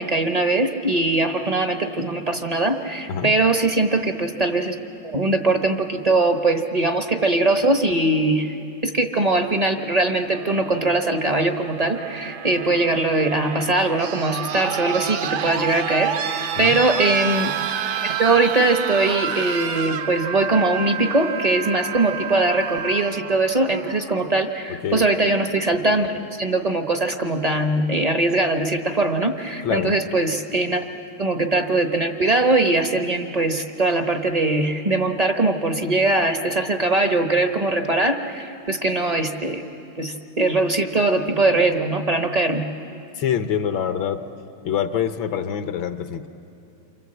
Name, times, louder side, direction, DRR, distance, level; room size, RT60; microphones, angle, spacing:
voice 1, 0.0-4.8 5.0-8.5 8.8-17.5 18.0-30.8 31.2-39.6 40.0-42.6, right 2 dB, 30° right, 5 dB, 0.7 m, -21 dB
sound 1, 10.2-24.2 25.4-25.5, right 8 dB, 60° right, 1.3 m, -29 dB
voice 2, 29.6-30.0 43.1-44.2 44.6-46.3, left 8 dB, 75° left, 8 dB, 1.6 m, -25 dB
28.5 x 25.5 x 7.9 m, 2.7 s
omnidirectional pair, 2.2 m